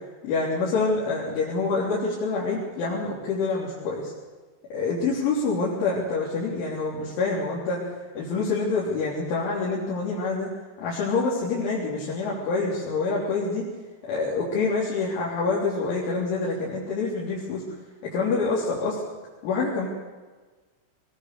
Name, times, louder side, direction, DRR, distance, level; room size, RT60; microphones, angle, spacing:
voice 1, 0.2-4.1 4.7-7.8 8.2-10.5 10.8-13.6 14.1-17.6 18.1-19.0 19.4-19.9, left 3 dB, 65° left, -7 dB, 6.0 m, -26 dB
22.0 x 21.0 x 7.0 m, 1.4 s
omnidirectional pair, 6.0 m